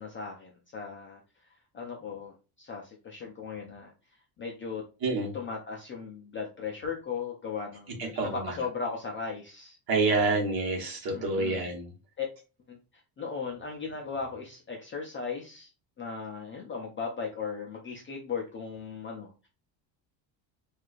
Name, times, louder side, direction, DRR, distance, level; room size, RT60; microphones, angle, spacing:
voice 1, 0.0-3.9 4.4-4.8 5.3-7.9 8.2-9.8 11.1-11.7 12.2-12.3 12.7-15.7 16.0-19.5, left 5 dB, 30° left, -1 dB, 0.3 m, -37 dB
voice 2, 8.0-8.5 9.9-11.9, right 3 dB, 45° right, 0 dB, 1.2 m, -28 dB
4.5 x 2.4 x 2.4 m, 0.33 s
cardioid pair, 170°, 49 cm